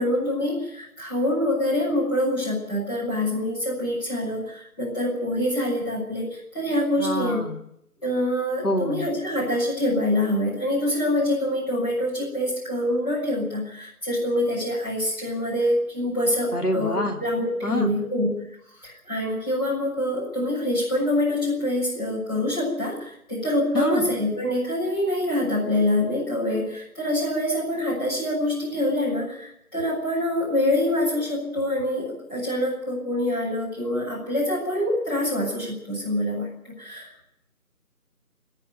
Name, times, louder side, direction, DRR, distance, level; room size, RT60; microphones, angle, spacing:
voice 1, 0.0-7.4 8.0-18.3 18.8-37.1, left 1 dB, 15° left, -7 dB, 7.0 m, -25 dB
voice 2, 7.0-7.6 8.6-9.1 16.5-17.2 17.6-17.9 23.7-24.1, left 1 dB, 85° left, 2 dB, 3.3 m, -26 dB
29.5 x 10.0 x 9.3 m, 0.77 s
figure-of-eight pair, 170°, 45 cm